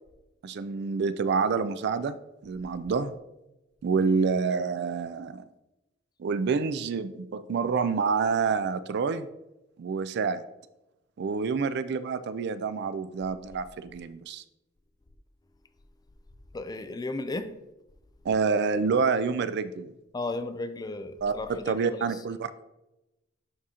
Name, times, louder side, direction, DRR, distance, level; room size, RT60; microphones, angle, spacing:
voice 1, 0.4-2.2 2.4-3.1 3.8-5.4 6.2-9.3 9.8-10.4 11.2-14.4 18.2-19.9 21.2-22.6, right 5 dB, 60° right, 13 dB, 0.4 m, -27 dB
voice 2, 16.5-17.5 20.1-22.1, left 2 dB, 20° left, 10 dB, 0.4 m, -34 dB
11.0 x 3.7 x 2.9 m, 0.95 s
head